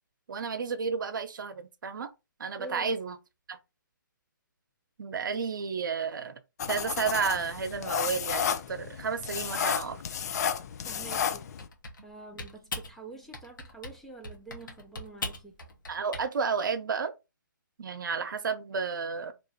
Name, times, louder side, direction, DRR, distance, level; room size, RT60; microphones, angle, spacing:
voice 1, 0.3-2.1 2.4-3.1 3.5-3.6 5.0-6.4 6.7-10.0 15.9-17.1 17.8-19.3, right 5 dB, 70° right, 0.8 m, -32 dB
voice 2, 2.6-2.9 10.8-11.4 12.0-15.6, right 3 dB, 5° left, 0.6 m, -46 dB
sound 1, 6.6-11.7, left 8 dB, 50° left, 0.5 m, -32 dB
Typing, 10.9-12.1 12.4-12.9 13.3-14.0 14.2-16.3, left 3 dB, 70° left, 1.3 m, -40 dB
3.0 x 2.7 x 4.0 m
hypercardioid pair, 145°, 11 cm